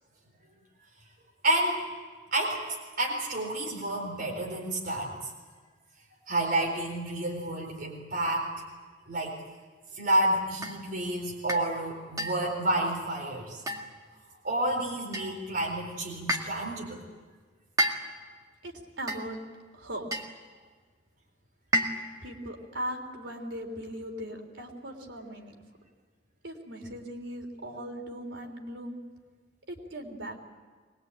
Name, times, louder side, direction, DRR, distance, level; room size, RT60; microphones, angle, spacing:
voice 1, 1.4-1.8 2.3-5.3 6.3-8.5 9.1-9.4 9.9-13.6 14.4-17.0, right 1 dB, 50° right, -1 dB, 4.2 m, -30 dB
sound 1, 10.6-10.9 11.5-11.7 12.2-12.5 13.7-14.1 15.1-15.5 16.3-16.7 17.8-18.3 19.1-19.5 20.1-20.4 21.7-22.2, right 1 dB, 20° right, 2.0 m, -31 dB
voice 2, 18.6-19.4 19.7-20.1 22.2-25.6 26.4-29.0 29.7-30.4, equal, 90° right, 2 dB, 3.7 m, -39 dB
23.0 x 20.5 x 8.9 m, 1.5 s
head